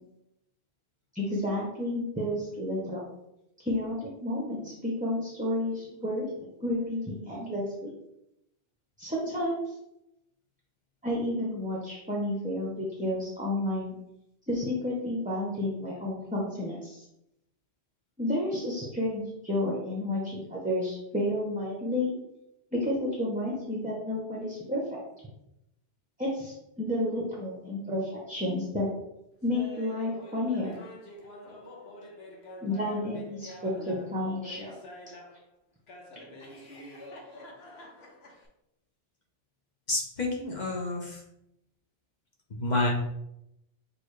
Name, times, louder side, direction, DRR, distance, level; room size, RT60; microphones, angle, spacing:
voice 1, 1.1-3.0 3.6-6.3 6.6-7.9 9.0-9.6 11.0-14.0 14.5-17.0 18.2-22.2 22.7-25.0 26.2-28.9 29.4-30.8 32.6-34.7, left 1 dB, 10° right, -4 dB, 0.6 m, -31 dB
Laughter, 29.5-35.4 35.9-38.5, left 1 dB, 75° left, 1.2 m, -47 dB
voice 2, 39.9-41.2 42.5-42.9, left 2 dB, 45° left, -1 dB, 1.0 m, -29 dB
6.4 x 2.6 x 3.2 m, 0.83 s
omnidirectional pair, 1.1 m